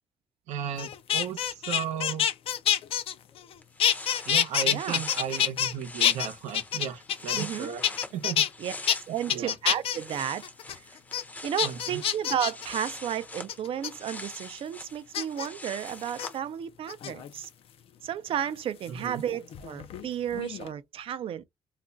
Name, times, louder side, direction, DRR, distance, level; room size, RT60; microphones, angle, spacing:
voice 1, 0.5-2.3 4.2-7.8 8.1-8.5 9.3-9.6 11.6-12.0 18.9-19.2, right 8 dB, 85° right, 0.7 m, -35 dB
sound 1, 0.8-3.5 3.8-5.7 6.0-7.5 7.8-8.5 8.9-9.0 9.3-10.0 10.4-10.7 11.1-11.2 11.6-12.6 13.5-13.9 15.1-15.5 16.1-16.3 16.9-17.4 18.9-20.1 20.3-20.7, left 10 dB, 55° left, 0.4 m, -27 dB
sound 2, 3.3-3.4 3.6-9.5 9.7-16.4, left 2 dB, 15° left, 0.6 m, -44 dB
voice 2, 4.6-5.0 7.3-7.7 8.6-10.4 11.4-17.5 18.0-21.4, right 9 dB, 50° right, 0.5 m, -33 dB
2.4 x 2.2 x 3.7 m
cardioid pair, 130°, 12 cm